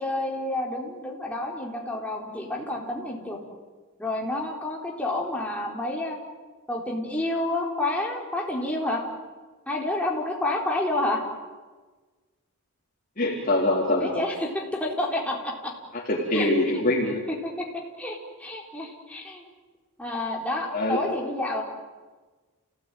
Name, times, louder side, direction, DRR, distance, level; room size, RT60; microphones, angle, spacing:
voice 1, 0.0-3.4 4.0-6.2 6.7-9.0 9.7-11.2 14.0-15.7 16.3-16.5 17.3-17.7 18.0-19.4 20.0-21.6, left 1 dB, 5° left, -2 dB, 4.2 m, -29 dB
voice 2, 13.2-14.2 15.9-17.2 20.7-21.0, left 1 dB, 40° left, -4 dB, 3.8 m, -24 dB
30.0 x 17.5 x 9.3 m, 1.3 s
head